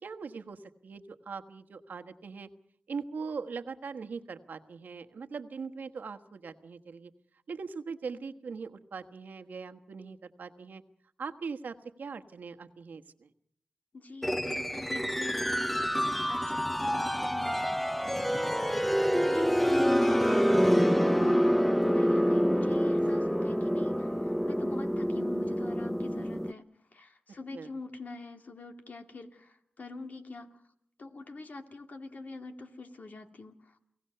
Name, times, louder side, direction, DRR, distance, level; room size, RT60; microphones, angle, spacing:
voice 1, 0.0-2.5 2.9-7.1 7.5-10.8 11.2-13.3 27.5-27.7, right 5 dB, 85° right, 7 dB, 1.3 m, -41 dB
voice 2, 13.9-15.6 15.8-17.6 18.3-18.7 19.1-26.7 26.9-30.6 31.0-33.8, left 3 dB, 65° left, 5 dB, 2.4 m, -45 dB
sound 1, 14.2-26.5, equal, 5° left, 0.8 m, -27 dB
29.5 x 17.5 x 6.8 m, 0.70 s
cardioid pair, 40°, 3 cm